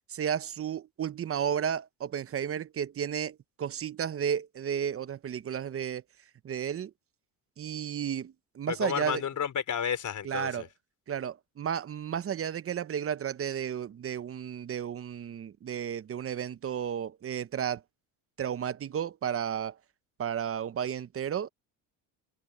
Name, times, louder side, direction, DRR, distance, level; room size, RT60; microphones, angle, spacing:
voice 1, 0.1-6.0 6.4-6.9 7.6-9.2 10.2-10.6 11.1-17.8 18.4-19.8 20.2-21.5, right 8 dB, 30° right, 0.8 m, -33 dB
voice 2, 8.7-10.7, left 8 dB, 40° left, 4.0 m, -31 dB
cardioid pair, 105°, 44 cm